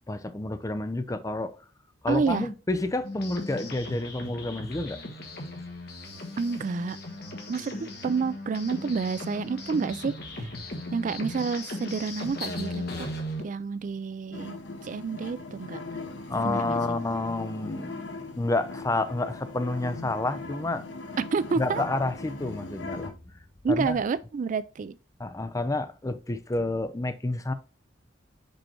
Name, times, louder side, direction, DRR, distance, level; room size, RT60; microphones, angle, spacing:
voice 1, 0.1-1.6 2.0-5.0 16.3-20.8 21.6-23.2 23.7-24.0 25.2-27.5, left 2 dB, 20° left, 0.6 m, -29 dB
voice 2, 2.1-2.5 6.4-7.0 7.5-10.5 10.9-13.1 13.4-15.8 16.4-17.0 21.3-21.8 23.6-25.0, right 5 dB, 45° right, 0.3 m, -29 dB
sound 1, 3.0-13.4, left 1 dB, 60° left, 1.5 m, -37 dB
sound 2, 14.3-23.1, left 3 dB, 85° left, 1.0 m, -39 dB
5.3 x 4.4 x 4.4 m
head